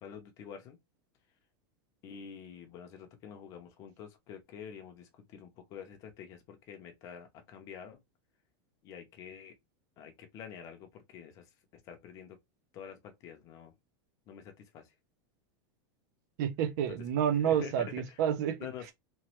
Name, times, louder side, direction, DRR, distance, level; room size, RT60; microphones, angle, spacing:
voice 1, 0.0-0.8 2.0-8.0 8.8-9.6 10.0-11.5 11.7-12.4 12.7-13.7 14.3-14.9 16.9-17.0 17.4-18.2 18.6-18.9, left 8 dB, 25° left, 0.6 m, -47 dB
voice 2, 16.4-18.7, right 9 dB, 45° right, 0.5 m, -29 dB
3.0 x 2.2 x 2.9 m
supercardioid pair, 175°, 13 cm